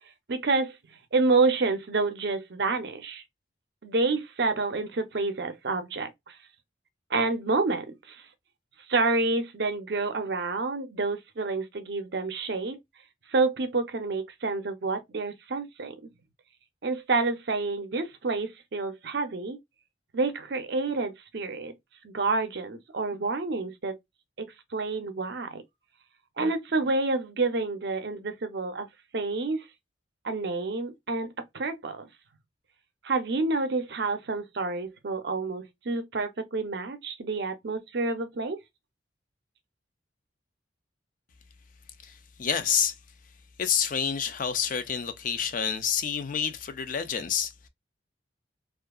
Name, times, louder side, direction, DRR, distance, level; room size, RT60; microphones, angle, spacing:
voice 1, 0.3-0.8 1.1-3.2 3.8-6.4 7.1-8.3 8.9-12.8 13.3-16.1 16.8-19.6 20.1-21.7 22.0-24.0 24.4-24.5 24.7-25.6 26.4-28.9 29.1-29.7 30.2-32.1 33.0-38.6, right 3 dB, 55° right, 0.6 m, -28 dB
voice 2, 42.0-42.9 43.6-47.7, left 7 dB, 45° left, 0.4 m, -28 dB
2.7 x 2.4 x 2.2 m
head